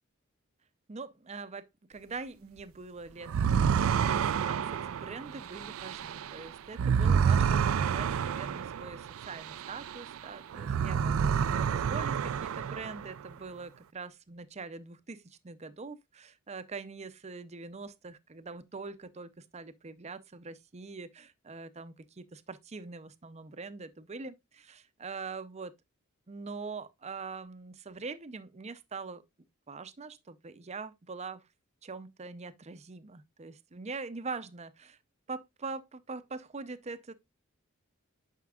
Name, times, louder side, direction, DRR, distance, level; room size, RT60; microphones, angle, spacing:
voice 1, 0.9-3.5 4.0-25.7 26.3-29.2 29.7-31.4 31.8-35.0 35.3-37.1, right 4 dB, 30° right, 0.6 m, -43 dB
sound 1, 3.3-10.2 10.5-13.2, right 7 dB, 80° right, 0.4 m, -29 dB
9.3 x 5.8 x 2.4 m
head